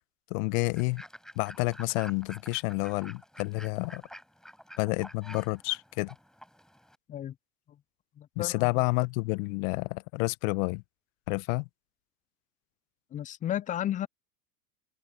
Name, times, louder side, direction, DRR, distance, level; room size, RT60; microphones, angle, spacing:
voice 1, 0.3-1.0 1.3-4.0 4.8-6.1 8.4-10.8 11.3-11.7, left 27 dB, 55° left, 1.3 m, -29 dB
Fowl / Bird, 0.8-7.0, equal, ahead, 6.9 m, -49 dB
voice 2, 8.2-8.7 13.1-14.1, left 11 dB, 20° left, 0.5 m, -33 dB
hypercardioid pair, 95°, 47 cm